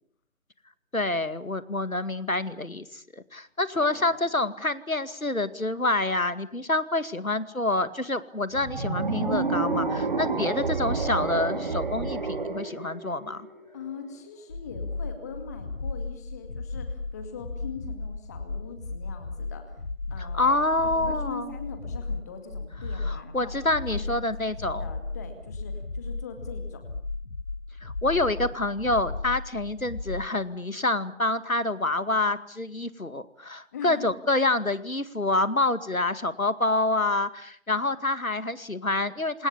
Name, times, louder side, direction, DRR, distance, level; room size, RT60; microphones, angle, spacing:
voice 1, 0.9-13.5 20.2-21.5 22.9-24.9 27.8-39.5, left 2 dB, 85° left, 13 dB, 2.3 m, -27 dB
voice 2, 3.8-4.1 10.3-10.6 13.7-19.8 20.1-20.6 20.9-23.5 23.9-24.3 24.8-26.8 33.7-34.1, left 5 dB, 15° left, 7 dB, 2.2 m, -41 dB
sound 1, 8.5-13.8, right 3 dB, 40° right, 4.0 m, -29 dB
sound 2, 14.5-30.3, left 3 dB, 70° left, 1.7 m, -35 dB
28.5 x 26.5 x 7.2 m, 0.62 s
figure-of-eight pair, 160°, 40 cm